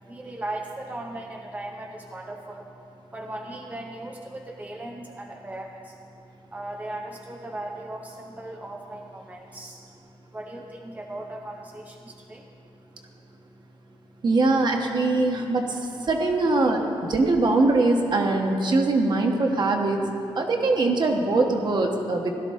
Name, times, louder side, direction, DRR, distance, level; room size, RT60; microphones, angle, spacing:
voice 1, 0.1-2.7 3.1-6.1 6.5-12.5, right 1 dB, 15° right, 1 dB, 0.7 m, -38 dB
voice 2, 14.2-15.8 16.0-20.1 20.4-22.3, right 2 dB, 50° right, 2 dB, 1.2 m, -22 dB
16.5 x 12.0 x 3.7 m, 2.8 s
wide cardioid pair, 140°, 10 cm